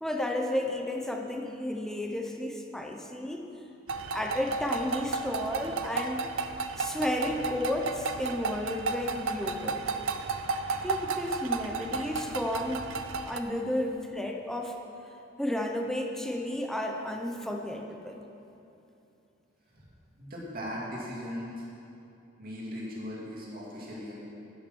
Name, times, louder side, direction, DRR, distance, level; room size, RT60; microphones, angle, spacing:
voice 1, 0.0-3.5 4.1-6.2 6.8-9.9 10.7-12.9 13.2-14.7 15.4-18.2, left 1 dB, ahead, 2 dB, 0.7 m, -32 dB
sound 1, 3.9-13.4, right 4 dB, 80° right, 0.6 m, -33 dB
voice 2, 20.2-21.6 22.4-24.1, equal, 50° right, -5 dB, 2.5 m, -38 dB
10.5 x 7.3 x 6.2 m, 2.8 s
head